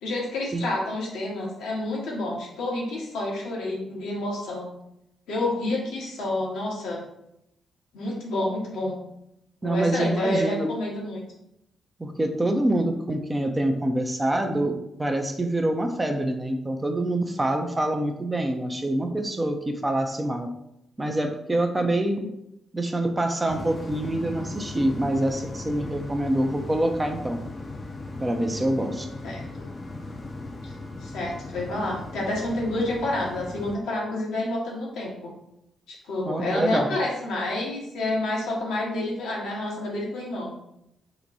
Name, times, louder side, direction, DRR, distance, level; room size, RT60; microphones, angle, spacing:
voice 1, 0.0-4.7 5.3-7.1 7.9-9.0 9.6-11.2 29.2-29.4 30.6-30.7 31.0-35.3 35.9-40.5, left 1 dB, 75° left, -3 dB, 1.0 m, -29 dB
voice 2, 9.6-10.7 12.0-20.5 21.0-22.3 22.7-27.4 28.2-29.1 36.2-37.0, right 1 dB, 25° right, 4 dB, 0.6 m, -26 dB
sound 1, 23.5-33.8, left 2 dB, 40° left, 0.6 m, -37 dB
3.0 x 2.2 x 4.0 m, 0.81 s
hypercardioid pair, 40°, 0 cm